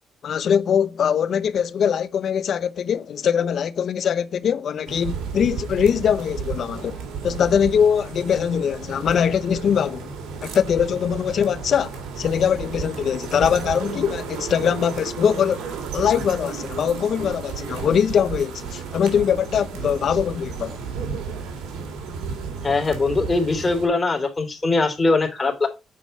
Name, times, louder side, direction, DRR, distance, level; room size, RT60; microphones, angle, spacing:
voice 1, 0.2-10.1 10.4-20.8, left 8 dB, 60° left, 0.8 m, -22 dB
sound 1, 4.9-23.9, right 6 dB, 90° right, 2.4 m, -33 dB
voice 2, 22.6-25.7, left 3 dB, 25° left, 3.3 m, -21 dB
8.6 x 5.1 x 5.6 m
cardioid pair, 90°, 0 cm